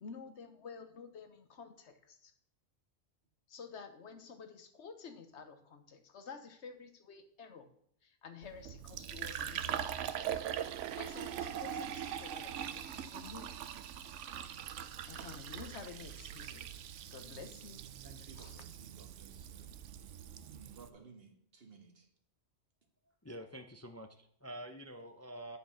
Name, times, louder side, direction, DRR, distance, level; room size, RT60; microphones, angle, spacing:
voice 1, 0.0-2.3 3.5-7.7 8.0-10.2 10.8-13.5 15.1-16.6 17.1-17.8 18.4-18.5, left 5 dB, 70° left, 8 dB, 1.3 m, -51 dB
Fill (with liquid), 8.4-20.9, right 9 dB, 90° right, 1.0 m, -42 dB
voice 2, 18.0-19.7 20.5-22.1, right 4 dB, 55° right, 3 dB, 1.7 m, -57 dB
voice 3, 23.2-25.6, right 1 dB, 20° left, 6 dB, 0.4 m, -47 dB
9.3 x 5.4 x 5.7 m, 0.64 s
omnidirectional pair, 1.2 m